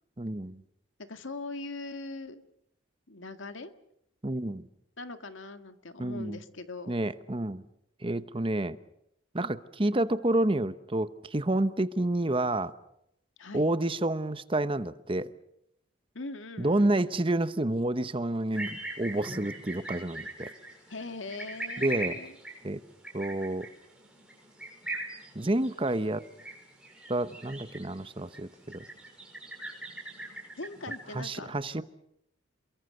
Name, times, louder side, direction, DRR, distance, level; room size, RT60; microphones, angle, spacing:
voice 1, 0.2-0.6 4.2-4.7 6.0-6.4 6.9-7.6 8.0-8.8 9.3-12.7 13.5-15.3 16.6-20.5 21.8-22.2 22.6-22.8 23.1-23.7 25.3-26.2 27.1-28.8 31.1-31.8, right 1 dB, 25° right, 0.9 m, -29 dB
voice 2, 1.0-2.4 3.1-3.7 5.0-6.9 13.4-13.7 16.1-16.9 20.9-22.4 30.6-31.5, left 2 dB, 75° left, 1.8 m, -41 dB
sound 1, 18.5-31.2, right 2 dB, 5° right, 6.0 m, -41 dB
28.5 x 22.5 x 6.7 m
head